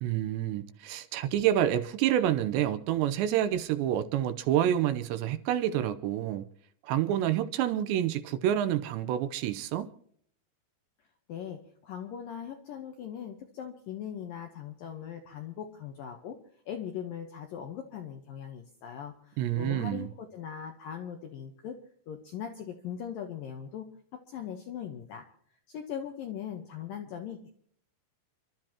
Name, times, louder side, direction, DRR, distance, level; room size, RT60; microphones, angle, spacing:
voice 1, 0.0-6.5 6.8-9.9 19.4-20.1, right 11 dB, 75° right, 2.8 m, -28 dB
voice 2, 11.3-16.4 16.7-21.8 22.1-23.9 24.1-25.3 25.7-27.5, left 8 dB, 75° left, 2.1 m, -40 dB
29.5 x 12.5 x 2.9 m
omnidirectional pair, 5.4 m